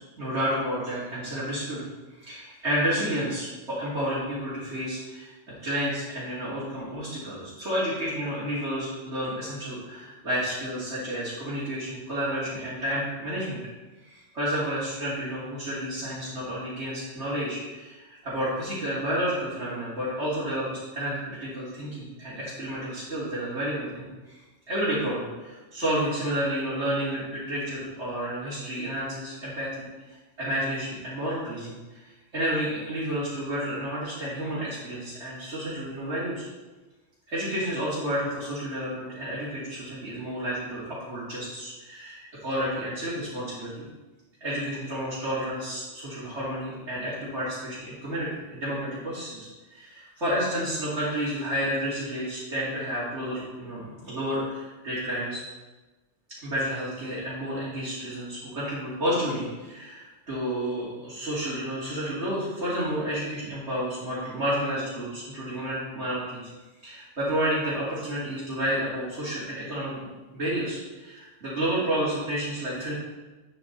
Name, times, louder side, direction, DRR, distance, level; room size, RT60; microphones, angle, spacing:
voice 1, 0.2-1.9 2.2-5.3 5.6-13.6 14.0-24.4 24.7-29.9 30.4-32.0 32.3-36.4 37.3-43.9 44.4-55.4 56.4-66.5 66.8-70.1 70.3-72.9, equal, 75° right, -11 dB, 3.0 m, -30 dB
9.2 x 7.2 x 4.0 m, 1.2 s
omnidirectional pair, 1.2 m